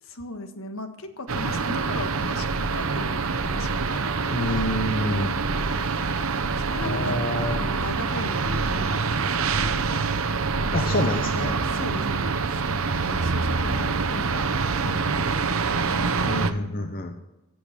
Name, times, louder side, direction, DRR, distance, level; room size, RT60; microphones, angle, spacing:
voice 1, 0.0-4.5 6.3-9.9 10.7-11.0 11.3-14.5 14.8-16.4, left 2 dB, 70° left, 7 dB, 1.6 m, -38 dB
sound 1, 1.3-16.5, right 4 dB, 70° right, 0.9 m, -26 dB
sound 2, 1.8-10.9, right 1 dB, 40° right, 1.0 m, -37 dB
voice 2, 4.3-5.3 6.8-7.6 8.1-8.2 10.7-11.6 16.2-17.2, left 1 dB, 45° left, 5 dB, 1.1 m, -27 dB
16.0 x 7.9 x 6.7 m, 0.98 s
head